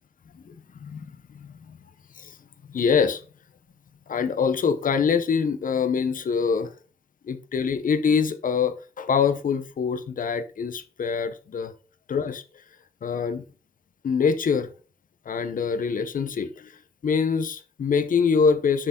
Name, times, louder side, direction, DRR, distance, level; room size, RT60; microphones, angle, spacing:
voice 1, 2.7-3.2 4.1-6.7 7.3-11.7 12.1-12.4 13.0-13.4 14.0-14.7 15.3-16.7 17.0-18.9, left 6 dB, 70° left, 10 dB, 0.8 m, -24 dB
7.5 x 6.6 x 3.8 m, 0.35 s
wide cardioid pair, 130°, 14 cm